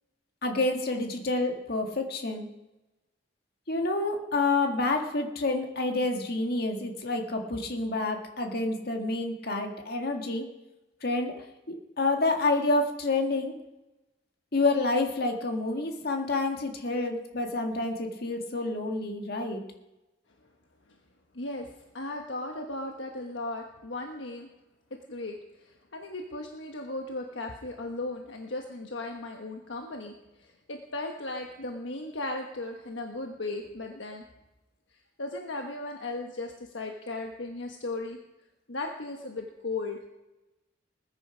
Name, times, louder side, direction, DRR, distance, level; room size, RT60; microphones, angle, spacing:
voice 1, 0.4-2.5 3.7-10.5 11.0-11.3 11.7-13.5 14.5-19.6, left 2 dB, 55° left, 4 dB, 1.9 m, -28 dB
voice 2, 21.3-24.5 25.1-34.2 35.2-38.2 38.7-40.0, left 2 dB, 85° left, 3 dB, 1.3 m, -36 dB
20.0 x 9.7 x 5.0 m, 1.0 s
head